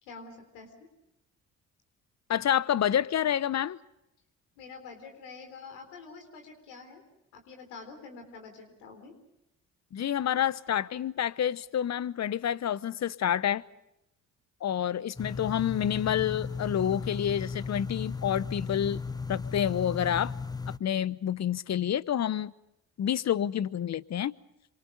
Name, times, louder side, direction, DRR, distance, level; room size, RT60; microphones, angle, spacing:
voice 1, 0.0-0.9 4.6-7.0 7.3-9.1, left 4 dB, 80° left, 3.9 m, -47 dB
voice 2, 2.3-3.8 9.9-13.6 14.6-19.0 19.3-20.3 20.8-22.5 23.0-24.3, left 10 dB, 45° left, 1.0 m, -28 dB
sound 1, 15.2-20.8, left 4 dB, 10° left, 0.8 m, -36 dB
27.5 x 26.0 x 5.3 m
hypercardioid pair, 45°, 37 cm